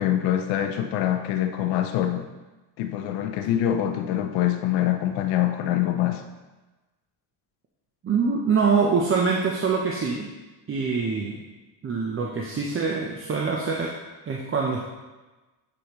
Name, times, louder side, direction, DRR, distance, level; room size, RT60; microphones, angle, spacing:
voice 1, 0.0-2.3 2.8-6.2, left 11 dB, 85° left, 6 dB, 0.7 m, -24 dB
voice 2, 8.0-10.3 10.7-11.4 11.8-13.9 14.3-14.8, right 5 dB, 30° right, -1 dB, 0.8 m, -24 dB
9.8 x 5.1 x 3.1 m, 1.2 s
cardioid pair, 125°, 44 cm